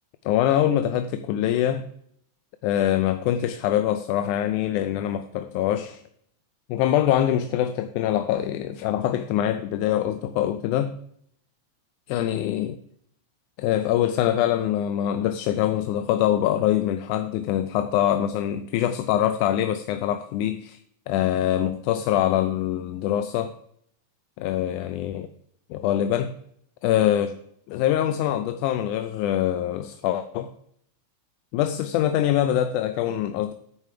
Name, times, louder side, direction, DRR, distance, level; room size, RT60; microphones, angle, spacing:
voice 1, 0.3-1.9 2.6-6.0 6.7-11.0 12.1-12.8 13.6-20.8 21.1-23.5 24.4-25.3 25.7-26.3 26.8-27.4 27.7-30.5 31.5-33.5, left 11 dB, 85° left, 2.0 m, -24 dB
10.5 x 4.6 x 7.3 m
omnidirectional pair, 3.5 m